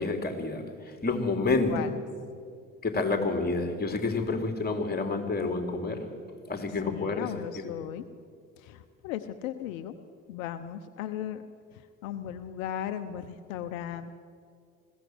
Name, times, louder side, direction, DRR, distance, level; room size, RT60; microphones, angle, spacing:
voice 1, 0.0-1.7 2.8-6.0 6.5-7.3, left 3 dB, 25° left, 5 dB, 3.4 m, -29 dB
voice 2, 6.7-8.1 8.6-9.9 10.3-11.4 11.7-14.1, left 11 dB, 75° left, 9 dB, 0.9 m, -37 dB
21.0 x 15.5 x 7.8 m, 2.2 s
hypercardioid pair, 60°, 41 cm